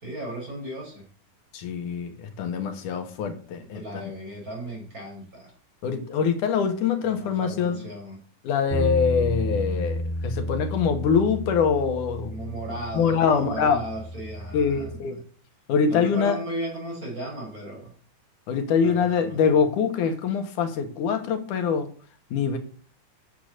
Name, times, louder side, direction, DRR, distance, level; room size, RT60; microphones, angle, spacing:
voice 1, 0.0-1.1 3.6-5.5 7.0-8.2 12.3-15.2 15.8-17.9 18.8-19.4, right 1 dB, 25° right, 4.9 m, -36 dB
voice 2, 1.5-3.8 5.8-7.8 8.4-12.3 12.9-13.8 14.5-15.2 15.7-16.4 18.5-21.9 22.3-22.6, left 6 dB, 85° left, 3.0 m, -24 dB
sound 1, 8.7-15.0, equal, 60° right, 2.7 m, -32 dB
10.5 x 6.7 x 7.6 m
omnidirectional pair, 3.5 m